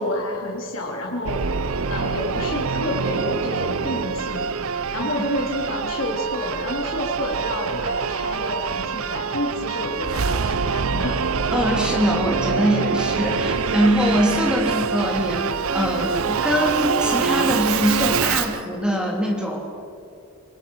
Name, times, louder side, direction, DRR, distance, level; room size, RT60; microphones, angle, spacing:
voice 1, 0.0-1.4 1.9-11.2, left 1 dB, 60° left, -2 dB, 3.3 m, -29 dB
Singing / Musical instrument, 1.3-18.6, right 5 dB, 70° right, 0.7 m, -25 dB
voice 2, 11.5-15.5 15.7-19.6, equal, 5° right, 0 dB, 3.4 m, -22 dB
28.5 x 19.5 x 6.3 m, 2.6 s
head